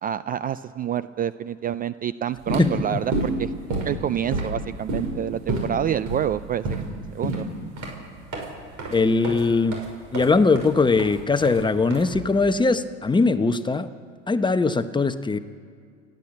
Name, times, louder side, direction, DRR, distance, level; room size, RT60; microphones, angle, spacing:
voice 1, 0.0-3.5 3.9-6.9 7.1-7.5, right 10 dB, 25° right, 16 dB, 0.4 m, -27 dB
sound 1, 2.3-12.5, right 2 dB, 50° right, 6.0 m, -30 dB
voice 2, 2.6-3.0 8.9-9.8 10.1-13.9 14.3-15.4, left 3 dB, 10° left, 10 dB, 1.0 m, -21 dB
29.5 x 10.5 x 8.7 m, 2.2 s
hypercardioid pair, 85°, 37 cm